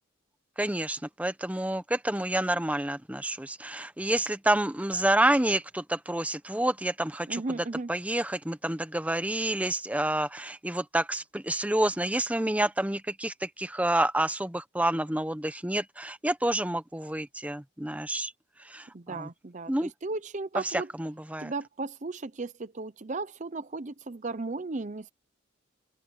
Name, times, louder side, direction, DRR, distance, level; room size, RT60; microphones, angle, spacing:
voice 1, 0.6-7.4 7.9-18.3 18.6-18.9 19.2-19.3 19.7-19.9 20.7-21.5, right 1 dB, 5° right, 0.9 m, -28 dB
voice 2, 7.3-7.9 18.9-20.9 21.4-25.1, right 3 dB, 40° right, 0.7 m, -35 dB
open air
head